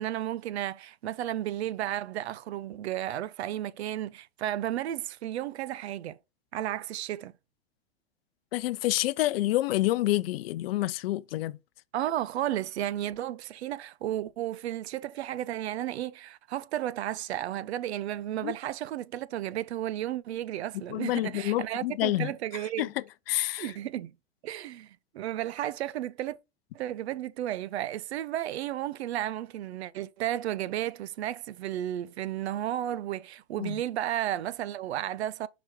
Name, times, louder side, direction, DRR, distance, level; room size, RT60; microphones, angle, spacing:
voice 1, 0.0-6.2 6.5-7.3 11.9-22.9 23.6-24.1 24.4-26.4 26.7-35.5, right 12 dB, 80° right, 0.6 m, -33 dB
voice 2, 8.5-11.6 18.4-18.5 20.9-22.3 22.8-23.7 33.6-33.8, left 16 dB, 65° left, 0.6 m, -28 dB
6.0 x 4.0 x 4.4 m
hypercardioid pair, 125°, 33 cm